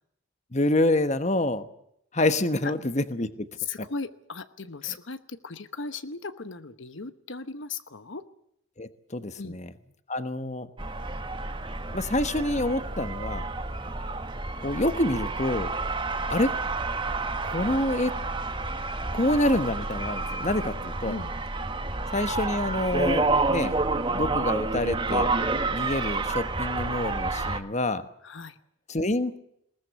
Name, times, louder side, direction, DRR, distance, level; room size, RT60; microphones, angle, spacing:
voice 1, 0.5-1.6 2.1-3.3 8.8-9.7 10.1-10.7 11.9-13.4 14.6-15.7 16.3-16.5 17.5-18.1 19.1-21.2 22.1-23.7 24.1-25.3 25.7-28.0 28.9-29.4, left 1 dB, 35° left, 11 dB, 1.2 m, -27 dB
voice 2, 3.6-8.2 9.4-9.6 21.0-21.3 28.2-28.5, left 4 dB, 65° left, 12 dB, 1.1 m, -37 dB
sound 1, 10.8-27.6, right 3 dB, 25° right, 1.4 m, -29 dB
21.0 x 19.0 x 8.2 m, 0.74 s
head